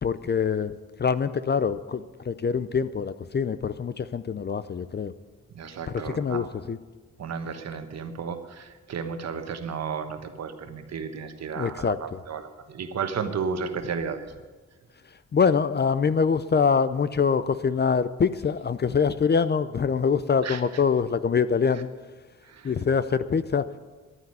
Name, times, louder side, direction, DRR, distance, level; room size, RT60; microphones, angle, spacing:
voice 1, 0.0-0.7 1.0-5.1 5.9-6.8 11.6-12.2 15.3-21.9 22.6-23.8, left 6 dB, 35° left, 14 dB, 0.5 m, -24 dB
voice 2, 5.5-6.5 7.2-14.3 20.4-20.6 22.5-22.7, right 6 dB, 60° right, 8 dB, 1.3 m, -33 dB
11.0 x 9.6 x 9.5 m, 1.3 s
cardioid pair, 100°, 29 cm